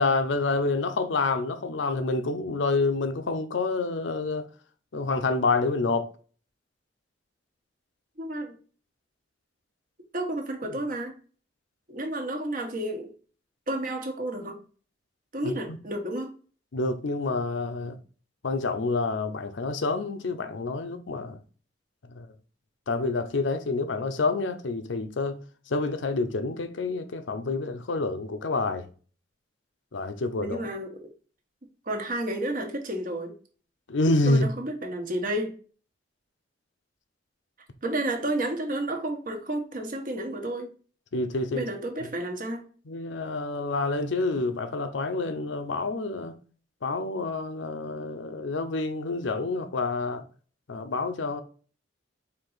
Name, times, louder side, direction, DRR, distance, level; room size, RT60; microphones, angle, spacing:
voice 1, 0.0-4.5 4.9-6.1 10.7-10.8 15.4-15.8 16.7-18.0 18.4-21.4 22.1-22.3 22.9-25.4 25.7-28.9 29.9-30.6 33.9-34.5 41.1-41.7 42.9-46.3 46.8-50.2 50.7-51.4, left 3 dB, 75° left, 0.6 m, -28 dB
voice 2, 8.2-8.5 10.1-11.2 11.9-13.1 13.7-14.6 15.3-16.3 30.4-31.1 31.9-33.3 34.2-35.5 37.8-40.7 41.5-42.6, right 1 dB, 45° right, 1.0 m, -31 dB
4.6 x 2.9 x 3.9 m
head